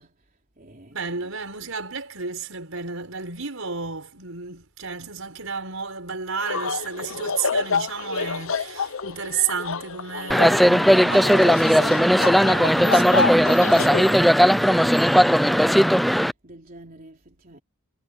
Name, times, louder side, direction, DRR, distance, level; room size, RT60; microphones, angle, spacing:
voice 1, 0.0-1.4 12.7-17.6, right 2 dB, 40° right, 3.8 m, -43 dB
voice 2, 0.9-14.0, right 6 dB, 70° right, 5.9 m, -32 dB
sound 1, 6.4-14.0, left 4 dB, 65° left, 1.0 m, -28 dB
sound 2, 10.3-16.3, equal, ahead, 0.6 m, -17 dB
head